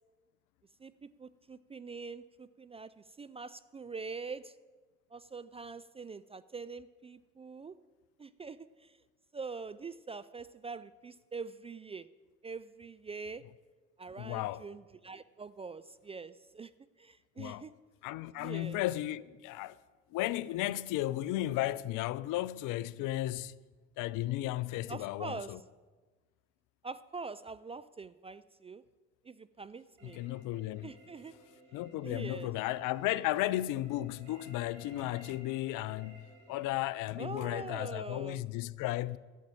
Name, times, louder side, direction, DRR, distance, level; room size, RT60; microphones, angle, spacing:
voice 1, 0.8-4.5 5.1-7.7 8.2-9.0 9.3-12.1 12.4-13.4 14.0-16.7 17.0-17.7 18.4-18.8 24.9-25.5 26.8-28.8 29.2-30.2 30.8-31.3 32.0-32.5 37.2-38.4, right 4 dB, 15° right, 0.3 m, -44 dB
voice 2, 14.2-14.6 17.4-17.7 18.0-19.8 20.1-23.6 24.0-25.6 30.0-30.9 31.7-36.2 36.5-39.2, left 15 dB, 60° left, 0.5 m, -34 dB
sound 1, 30.0-36.8, right 2 dB, 80° right, 2.8 m, -57 dB
11.5 x 7.4 x 8.7 m
figure-of-eight pair, 45°, 37 cm